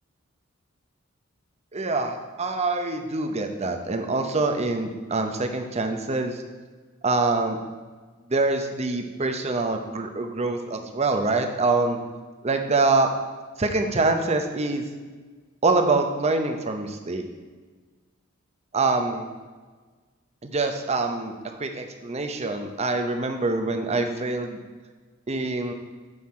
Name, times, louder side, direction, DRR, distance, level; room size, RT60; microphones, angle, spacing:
voice 1, 1.7-6.4 7.0-7.6 8.3-12.0 12.4-13.1 13.6-14.9 15.6-17.2 18.7-19.3 20.4-24.6 25.3-25.7, right 3 dB, 30° right, 5 dB, 0.7 m, -25 dB
7.9 x 5.6 x 4.3 m, 1.4 s
head